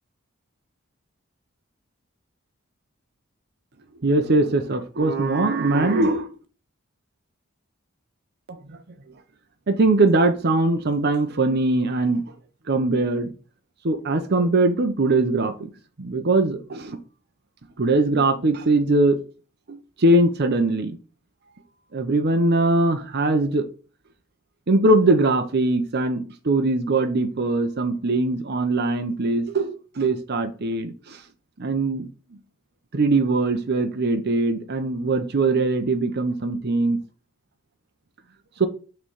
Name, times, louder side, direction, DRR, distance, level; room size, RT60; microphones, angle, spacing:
voice 1, 4.0-6.3 8.5-8.8 9.7-12.2 12.7-13.3 13.8-15.7 16.0-17.0 17.8-19.2 19.7-21.0 21.9-23.6 24.7-31.2 31.6-32.1 32.9-37.0 38.6-38.7, right 2 dB, 50° right, 0.7 m, -21 dB
5.9 x 3.3 x 5.4 m
head